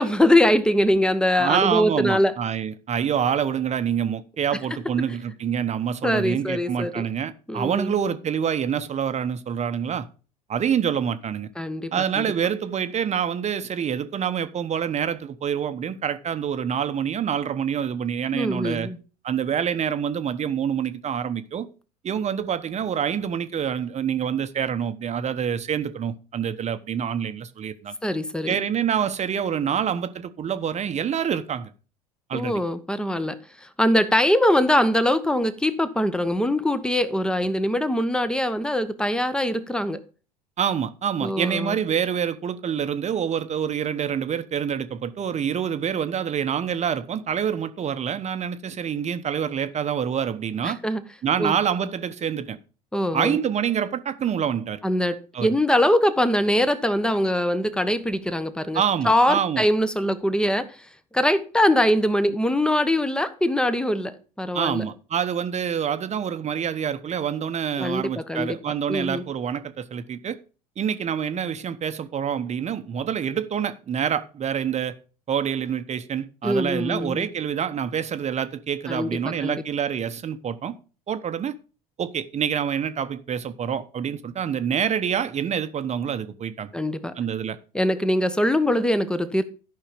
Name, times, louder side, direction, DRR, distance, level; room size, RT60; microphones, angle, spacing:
voice 1, 0.0-2.3 6.0-7.0 7.5-7.9 11.6-12.3 18.3-19.0 28.0-28.6 32.3-40.0 41.2-41.8 50.6-51.0 51.4-51.5 52.9-53.4 54.8-60.8 61.1-64.8 67.8-68.6 68.9-69.3 76.4-77.3 78.9-79.1 79.4-79.6 86.7-87.1 87.7-89.4, left 1 dB, 5° left, 1.2 m, -22 dB
voice 2, 1.4-10.1 10.5-11.5 11.9-18.9 19.2-21.7 22.0-27.9 28.5-31.7 32.3-32.6 40.6-50.8 51.2-52.6 53.1-54.8 55.3-55.5 58.7-59.7 64.5-70.4 70.8-74.9 75.3-80.7 81.1-81.5 82.0-86.7 87.1-87.6, right 8 dB, 35° right, 1.0 m, -26 dB
13.0 x 5.7 x 5.2 m
hypercardioid pair, 70°, 19 cm